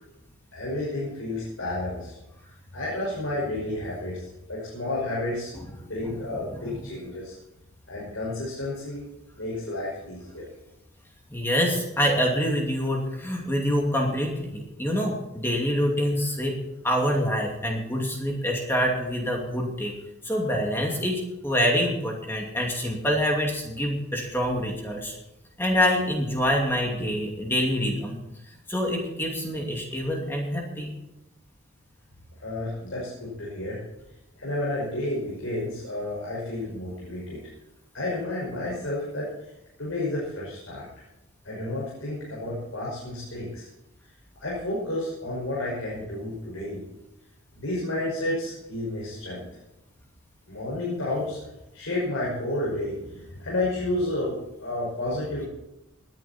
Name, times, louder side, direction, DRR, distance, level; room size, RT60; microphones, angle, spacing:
voice 1, 0.5-2.2 2.7-7.3 7.9-9.0 9.4-10.4 32.4-33.8 34.4-37.4 37.9-39.3 39.8-40.8 41.4-43.7 44.4-46.8 47.6-49.4 50.5-51.4 51.7-55.5, left 1 dB, 70° left, -6 dB, 6.0 m, -31 dB
voice 2, 11.3-16.6 16.8-19.9 20.2-25.2 25.6-28.2 28.7-30.9, equal, 10° left, 0 dB, 2.6 m, -26 dB
19.5 x 10.5 x 4.4 m, 0.91 s
head